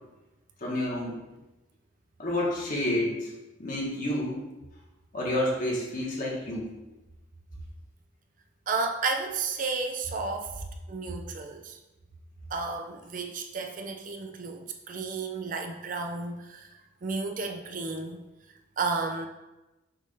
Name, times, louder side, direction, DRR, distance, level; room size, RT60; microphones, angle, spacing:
voice 1, 0.6-1.2 2.2-3.3 3.6-4.4 5.1-6.7, left 1 dB, 45° left, -4 dB, 1.5 m, -29 dB
voice 2, 8.7-11.8 12.5-18.2 18.8-19.3, right 4 dB, 45° right, 4 dB, 0.5 m, -32 dB
6.3 x 2.7 x 5.4 m, 1.0 s
head